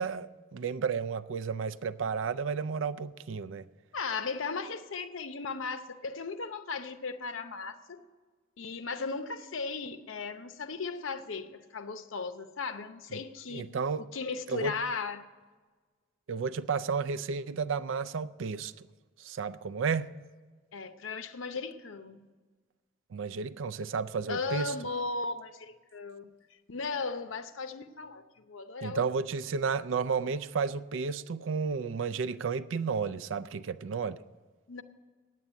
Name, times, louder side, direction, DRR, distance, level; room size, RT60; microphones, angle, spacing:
voice 1, 0.0-3.6 13.5-14.0 14.5-14.7 16.3-18.7 19.2-20.1 23.1-24.7 28.8-34.2, right 5 dB, 80° right, 0.4 m, -32 dB
voice 2, 3.9-8.1 8.6-13.6 14.0-15.2 20.7-22.2 24.3-26.3 26.7-29.1 34.7-34.8, left 4 dB, 90° left, 0.7 m, -36 dB
9.3 x 8.5 x 8.9 m
head